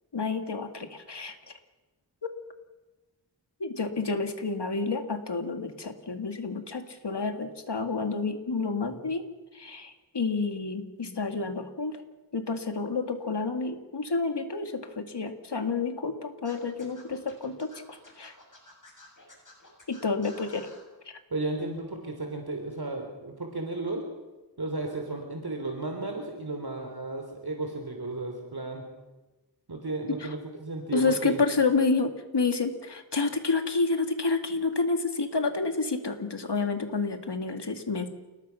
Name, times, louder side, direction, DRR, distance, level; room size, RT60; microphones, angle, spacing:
voice 1, 0.1-1.4 3.6-9.2 9.5-12.0 12.3-18.3 19.9-20.7 30.2-30.3 30.9-38.1, left 4 dB, 70° left, 6 dB, 2.3 m, -29 dB
Scratching (performance technique), 16.4-20.8, left 2 dB, 45° left, 7.8 m, -52 dB
voice 2, 21.3-24.0 24.6-28.8 29.7-31.4, right 2 dB, 60° right, 3 dB, 3.3 m, -34 dB
29.0 x 19.5 x 5.8 m, 1.2 s
wide cardioid pair, 65°, 43 cm